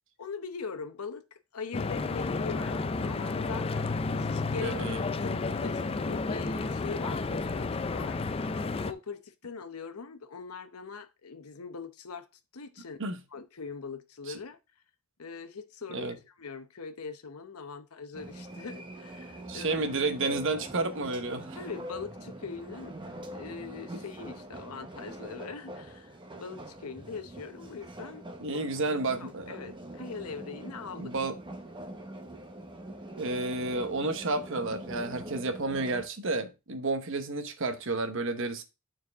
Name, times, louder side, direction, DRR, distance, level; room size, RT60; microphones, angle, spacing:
voice 1, 0.2-4.7 5.1-7.7 7.9-8.4 8.8-12.3 12.5-13.0 13.3-14.6 15.2-19.8 21.5-22.9 23.3-28.8 29.2-31.1, left 5 dB, 85° left, 0.8 m, -42 dB
Stream / Boat Water vehicle, 1.7-8.9, left 3 dB, 25° left, 0.3 m, -31 dB
voice 2, 4.6-5.0 13.0-13.2 14.3-14.4 15.9-16.2 19.5-21.6 23.9-24.0 28.4-29.6 31.0-31.3 33.2-38.6, right 3 dB, 60° right, 1.0 m, -31 dB
sound 1, 18.1-36.1, right 1 dB, 20° right, 0.9 m, -44 dB
9.0 x 4.6 x 3.5 m
head